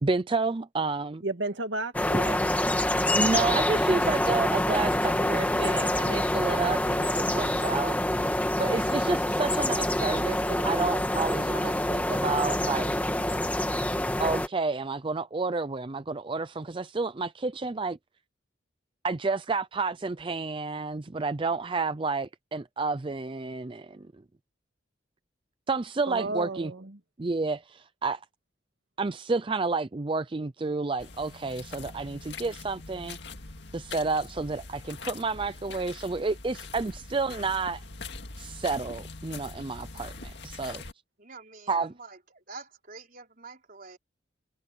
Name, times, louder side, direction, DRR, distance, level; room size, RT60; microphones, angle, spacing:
voice 1, 0.0-1.2 3.1-8.0 8.6-12.9 14.2-18.0 19.0-24.1 25.7-26.7 27.2-28.2 29.0-33.2 33.7-37.8 38.4-40.8 41.7-41.9, right 3 dB, 30° right, 0.5 m, -30 dB
voice 2, 1.2-2.5 26.1-27.0, right 2 dB, 90° right, 2.2 m, -33 dB
sound 1, 1.9-14.5, left 1 dB, 10° left, 1.9 m, -26 dB
sound 2, 31.0-40.9, left 4 dB, 65° left, 2.1 m, -43 dB
voice 3, 41.2-44.0, right 4 dB, 50° right, 4.1 m, -46 dB
head